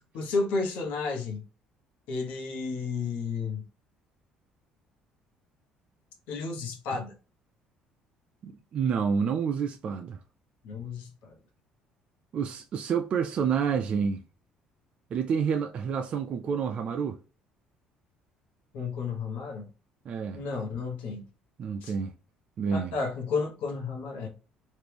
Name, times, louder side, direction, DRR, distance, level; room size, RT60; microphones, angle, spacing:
voice 1, 0.0-1.4 2.1-3.6 6.3-7.1 10.6-11.3 18.7-19.7 20.3-21.3 21.8-21.9 22.7-24.3, left 4 dB, 75° left, 1.2 m, -32 dB
voice 2, 8.4-10.2 12.3-14.2 15.1-17.2 20.1-20.4 21.6-22.1 22.6-22.9, right 6 dB, 45° right, 0.3 m, -28 dB
3.0 x 2.5 x 3.3 m
cardioid pair, 110°, 3 cm